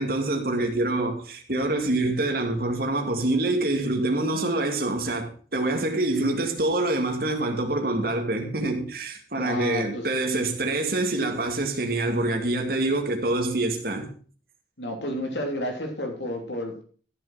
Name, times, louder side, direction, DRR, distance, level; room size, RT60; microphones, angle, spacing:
voice 1, 0.0-14.1, right 2 dB, 55° right, 2.3 m, -26 dB
voice 2, 9.4-10.0 14.8-16.8, left 1 dB, 75° left, 3.1 m, -31 dB
14.0 x 6.8 x 5.7 m
head